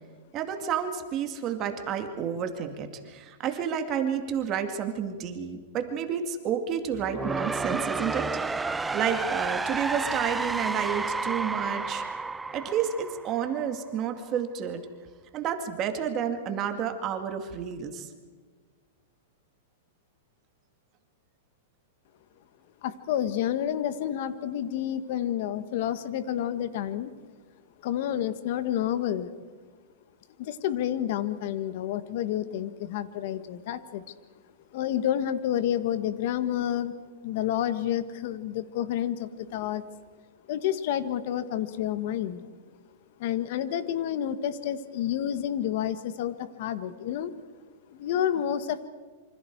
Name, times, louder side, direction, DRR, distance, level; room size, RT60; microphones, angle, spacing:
voice 1, 0.3-12.0 12.5-14.9 15.3-18.1, right 8 dB, 30° right, 6 dB, 2.3 m, -30 dB
sound 1, 6.9-13.9, right 3 dB, 10° right, 0.5 m, -31 dB
voice 2, 22.8-27.1 27.8-29.3 30.4-34.0 34.7-36.9 37.2-39.8 40.5-42.5 43.2-47.3 47.9-48.9, left 10 dB, 55° left, 12 dB, 1.6 m, -29 dB
27.5 x 25.5 x 4.8 m, 1.5 s
supercardioid pair, 150°, 0 cm